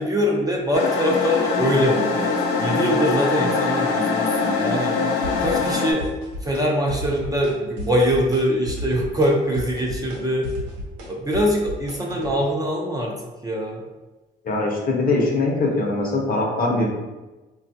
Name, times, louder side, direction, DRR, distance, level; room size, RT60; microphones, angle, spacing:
voice 1, 0.0-2.3 2.6-5.0 5.4-6.0 6.4-10.5 11.1-13.1 13.4-13.8, equal, 20° right, -1 dB, 0.5 m, -23 dB
sound 1, 0.7-5.9, left 4 dB, 90° left, 0.5 m, -23 dB
sound 2, 5.2-5.7 6.0-6.6 6.9-7.5 7.8-8.4 8.7-12.3, equal, 90° right, 0.8 m, -33 dB
voice 2, 14.4-16.9, left 2 dB, 45° left, -1 dB, 0.8 m, -22 dB
3.5 x 2.3 x 2.7 m, 1.1 s
cardioid pair, 90°, 20 cm